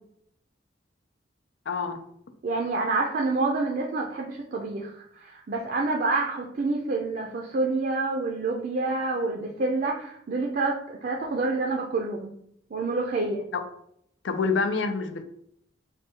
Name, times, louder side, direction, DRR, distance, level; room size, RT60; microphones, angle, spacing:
voice 1, 1.7-2.0 13.5-13.6 14.2-15.2, left 4 dB, 85° left, 8 dB, 0.5 m, -27 dB
voice 2, 2.4-12.3 12.7-13.4, right 3 dB, 50° right, 0 dB, 0.4 m, -28 dB
3.3 x 2.3 x 4.3 m, 0.71 s
head